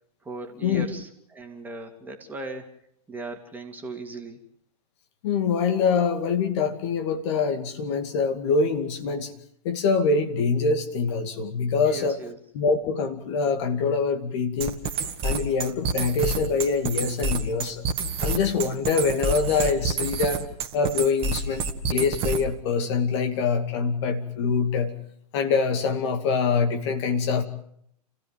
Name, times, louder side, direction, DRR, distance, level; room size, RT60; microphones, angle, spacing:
voice 1, 0.2-2.7 3.1-4.4 11.8-12.4, right 2 dB, 10° right, 3 dB, 2.8 m, -37 dB
voice 2, 5.2-9.3 9.6-12.2 12.5-14.8 15.2-17.8 18.2-20.4 20.7-24.9 25.3-27.4, left 5 dB, 45° left, 6 dB, 2.4 m, -24 dB
sound 1, 14.6-22.6, right 4 dB, 25° right, 2.1 m, -28 dB
30.0 x 16.0 x 7.6 m, 0.70 s
figure-of-eight pair, 110°, 21 cm